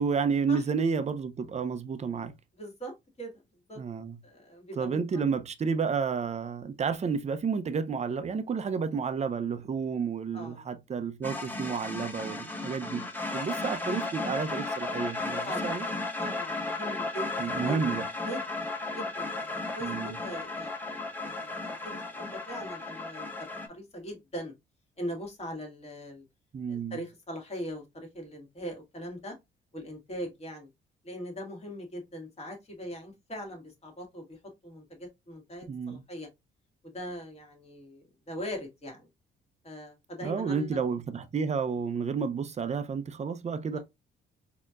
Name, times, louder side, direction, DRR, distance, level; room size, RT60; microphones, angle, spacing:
voice 1, 0.0-2.3 3.8-4.2 4.8-13.0 13.3-15.8 17.4-18.0 19.8-20.2 26.5-27.0 35.7-36.0 40.2-43.8, right 5 dB, 35° right, 0.6 m, -31 dB
voice 2, 2.5-3.3 3.7-3.8 4.2-5.3 10.3-10.7 15.4-15.9 16.2-17.8 18.3-18.7 18.9-24.5 25.0-26.2 26.7-29.4 29.7-30.7 31.0-36.3 36.8-39.1 39.6-40.8, equal, 30° left, 1.9 m, -41 dB
sound 1, 11.2-23.7, left 2 dB, 10° left, 1.0 m, -34 dB
4.2 x 2.9 x 2.4 m
cardioid pair, 90°, 20 cm